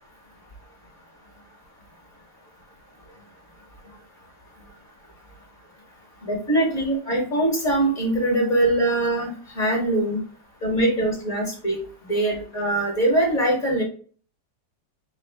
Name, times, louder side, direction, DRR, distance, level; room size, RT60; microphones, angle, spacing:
voice 1, 6.2-10.2 10.6-11.8 12.1-13.8, right 1 dB, 45° left, -2 dB, 1.6 m, -22 dB
5.3 x 2.4 x 3.4 m, 0.42 s
omnidirectional pair, 2.0 m